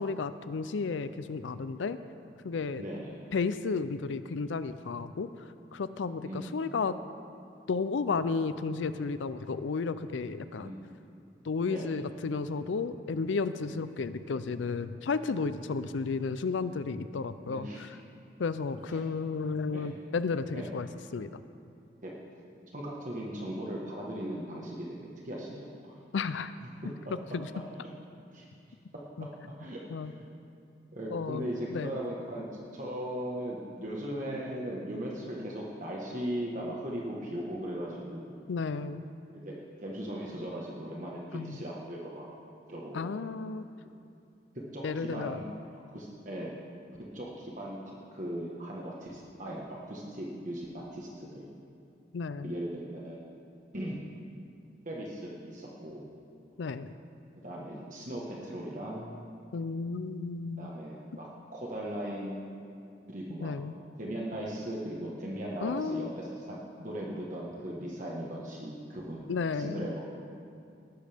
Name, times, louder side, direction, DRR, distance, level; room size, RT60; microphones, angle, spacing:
voice 1, 0.0-2.0 2.4-2.8 3.3-7.0 7.7-10.7 11.4-18.0 18.4-21.4 26.1-26.5 27.3-27.5 29.2-29.3 29.9-30.1 31.1-31.4 31.7-31.9 38.5-39.0 41.3-41.6 42.9-43.7 44.8-45.5 52.1-52.5 56.6-56.9 59.5-60.7 63.4-63.7 65.6-66.1 69.3-69.9, left 4 dB, 85° left, 12 dB, 0.5 m, -33 dB
voice 2, 2.8-3.2 6.2-6.7 10.6-10.8 11.7-11.9 13.6-13.7 17.5-17.8 18.9-19.1 19.7-19.9 20.5-20.7 22.0-22.1 22.7-26.0 26.8-27.1 27.8-27.9 28.3-28.4 29.6-30.1 30.9-32.5 32.7-38.3 39.3-39.6 39.8-42.3 42.7-43.2 44.5-45.5 45.9-46.5 47.1-51.5 52.4-53.2 53.7-54.0 54.8-56.0 57.4-59.2 60.6-62.4 63.1-63.5 64.0-70.0, right 1 dB, 40° right, -3 dB, 1.4 m, -38 dB
19.5 x 11.5 x 3.5 m, 2.5 s
head